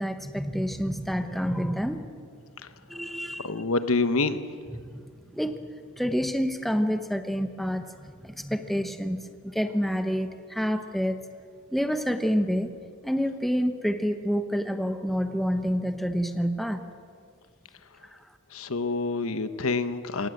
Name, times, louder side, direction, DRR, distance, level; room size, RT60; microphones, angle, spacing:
voice 1, 0.0-2.1 2.9-3.6 4.7-5.0 5.3-5.7 6.0-11.3 11.7-12.7 13.0-16.8, equal, ahead, 8 dB, 1.0 m, -28 dB
voice 2, 3.4-4.4 18.5-20.3, left 3 dB, 70° left, 11 dB, 1.1 m, -27 dB
26.5 x 18.5 x 7.9 m, 2.2 s
head